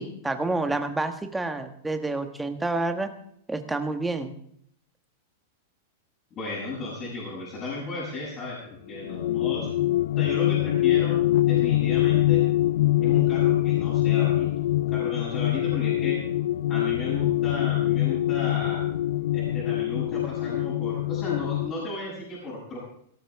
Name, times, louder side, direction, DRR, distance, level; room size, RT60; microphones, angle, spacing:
voice 1, 0.0-3.1 3.5-4.3, right 2 dB, 5° right, 7 dB, 1.4 m, -28 dB
voice 2, 6.3-9.7 10.2-11.2 11.5-12.4 13.0-14.5 14.8-16.2 16.7-18.8 19.3-22.8, left 2 dB, 30° left, -7 dB, 7.4 m, -34 dB
sound 1, 8.9-21.7, left 15 dB, 70° left, 0.5 m, -24 dB
17.5 x 13.5 x 3.6 m, 0.68 s
supercardioid pair, 145°, 0 cm